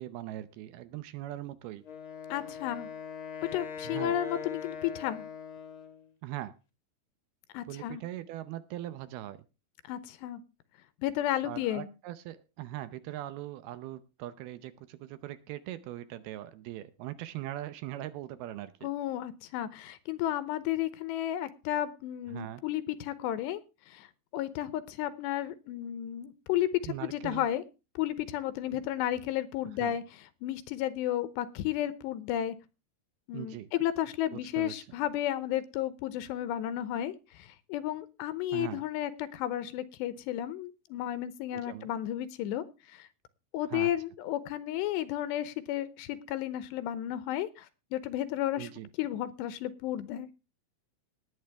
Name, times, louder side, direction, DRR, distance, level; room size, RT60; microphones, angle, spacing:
voice 1, 0.0-1.8 3.8-4.2 6.2-6.5 7.7-9.4 11.4-18.9 22.3-22.6 26.9-27.5 28.7-28.8 29.8-30.0 33.3-33.7 34.3-34.9 38.5-38.8 41.5-41.9 43.7-43.9 48.6-48.9, right 14 dB, 75° right, 14 dB, 2.4 m, -41 dB
Wind instrument woodwind instrument, 1.8-6.1, left 6 dB, 45° left, 1.7 m, -41 dB
voice 2, 2.3-2.9 3.5-5.2 7.5-8.0 9.9-10.4 11.0-11.9 18.8-23.6 23.9-24.1 24.3-27.6 28.0-30.0 30.4-32.6 33.3-43.1 43.5-48.7 49.0-50.3, left 12 dB, 80° left, 14 dB, 2.9 m, -33 dB
19.0 x 9.0 x 3.4 m, 0.29 s
omnidirectional pair, 5.0 m